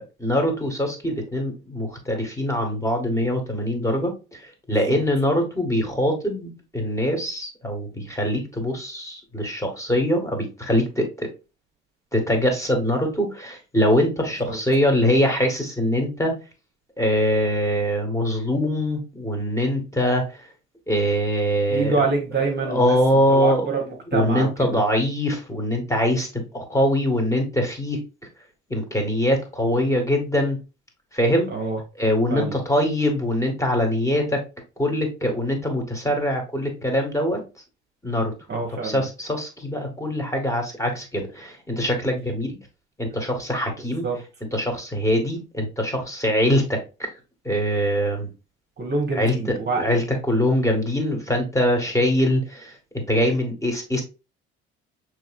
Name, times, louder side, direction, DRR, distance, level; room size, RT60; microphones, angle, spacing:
voice 1, 0.0-11.3 12.1-16.3 17.0-20.5 20.9-22.0 22.4-23.7 24.1-28.0 28.7-30.6 31.1-31.5 32.0-34.4 34.8-37.4 38.0-38.3 38.8-42.6 43.0-44.1 44.5-47.1 47.4-48.3 49.1-52.8 53.1-54.0, equal, 10° left, 1.7 m, -23 dB
voice 2, 21.7-23.0 23.3-24.8 31.5-31.8 32.3-32.6 38.5-39.0 44.0-44.2 48.8-49.8, right 3 dB, 35° right, 1.1 m, -26 dB
6.3 x 3.2 x 2.4 m
hypercardioid pair, 50°, 31 cm